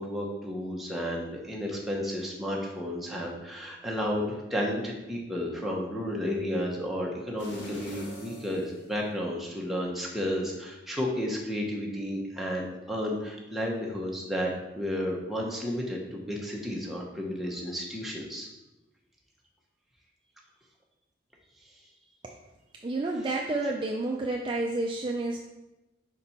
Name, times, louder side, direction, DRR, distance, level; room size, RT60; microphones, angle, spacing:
voice 1, 0.0-18.5, equal, ahead, -3 dB, 0.8 m, -32 dB
sound 1, 7.4-9.5 10.0-10.1, equal, 70° left, 1.2 m, -45 dB
voice 2, 22.8-25.4, right 2 dB, 25° right, -1 dB, 0.4 m, -30 dB
5.2 x 4.2 x 4.2 m, 1.0 s
head